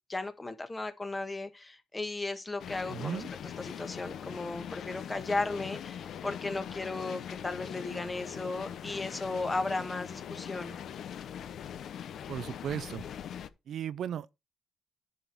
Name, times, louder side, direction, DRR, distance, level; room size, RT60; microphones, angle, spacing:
voice 1, 0.1-3.2 3.6-10.8, left 2 dB, 20° left, 1.4 m, -35 dB
sound 1, 2.6-13.5, left 9 dB, 65° left, 0.7 m, -41 dB
voice 2, 2.9-3.3 12.3-13.0 13.7-14.4, right 9 dB, 65° right, 0.4 m, -36 dB
10.0 x 5.2 x 4.6 m
cardioid pair, 90°, 0 cm